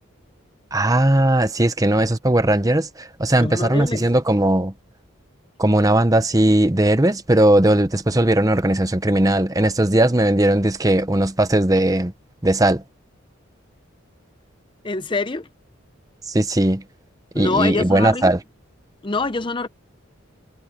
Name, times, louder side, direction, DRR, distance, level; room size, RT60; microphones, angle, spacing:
voice 1, 0.7-4.7 5.6-12.1 12.4-12.8 16.3-16.8 17.3-18.4, right 1 dB, 15° right, 0.9 m, -18 dB
voice 2, 3.3-4.0 14.8-15.5 17.3-18.3 19.0-19.7, left 3 dB, 25° left, 0.7 m, -25 dB
head